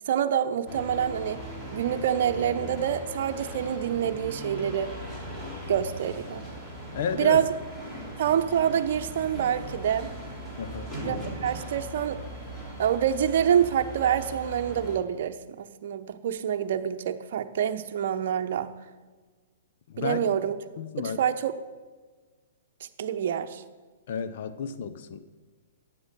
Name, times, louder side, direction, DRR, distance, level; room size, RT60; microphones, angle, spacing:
voice 1, 0.1-1.4 1.7-4.9 5.7-6.4 7.1-7.5 8.2-10.1 11.0-12.2 12.8-18.7 20.0-20.6 21.0-21.5 23.0-23.6, right 9 dB, 60° right, 7 dB, 0.8 m, -26 dB
sound 1, 0.7-15.0, equal, 15° left, 3.4 m, -39 dB
voice 2, 6.9-7.4 10.6-10.9 19.9-20.2 20.8-21.2 24.1-25.2, left 7 dB, 60° left, 11 dB, 0.8 m, -32 dB
9.3 x 8.0 x 6.8 m, 1.4 s
hypercardioid pair, 130°, 0 cm